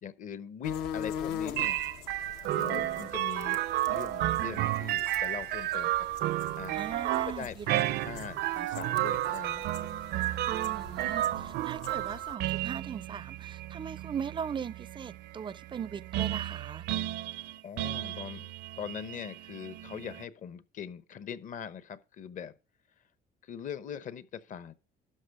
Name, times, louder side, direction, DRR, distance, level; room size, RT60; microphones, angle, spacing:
voice 1, 0.0-1.9 2.5-6.1 6.6-6.8 7.3-10.0 17.6-18.5 18.8-22.5 23.4-24.7, left 8 dB, 50° left, 0.9 m, -42 dB
sound 1, 0.6-12.3, left 8 dB, 85° left, 1.2 m, -43 dB
sound 2, 1.6-20.2, right 14 dB, 80° right, 0.6 m, -32 dB
voice 2, 6.7-8.1 10.5-16.8, right 7 dB, 30° right, 0.4 m, -39 dB
12.5 x 6.3 x 4.8 m
cardioid pair, 110°, 17 cm